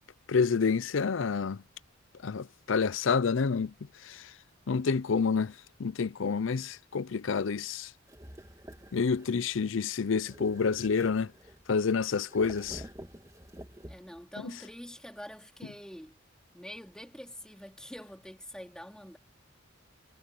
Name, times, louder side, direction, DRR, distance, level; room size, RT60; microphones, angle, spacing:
voice 1, 0.3-1.6 2.2-3.7 4.7-5.5 5.8-7.9 8.9-11.3 11.7-12.8, left 5 dB, 70° left, 0.5 m, -28 dB
sound 1, 8.1-9.4 10.2-11.8 12.3-14.3, equal, 15° right, 2.5 m, -49 dB
voice 2, 13.8-16.2 16.5-19.2, equal, 5° left, 3.6 m, -46 dB
head